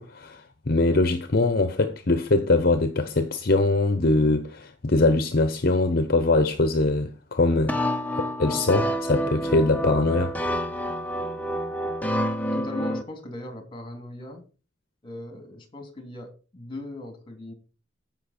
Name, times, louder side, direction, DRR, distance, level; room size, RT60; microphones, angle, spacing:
voice 1, 0.0-7.7 8.2-10.3, left 2 dB, 55° left, 0.9 m, -22 dB
sound 1, 7.7-13.0, equal, 10° left, 1.1 m, -28 dB
voice 2, 12.5-14.4 15.0-17.5, left 2 dB, 25° left, 2.8 m, -39 dB
15.0 x 5.7 x 4.3 m
head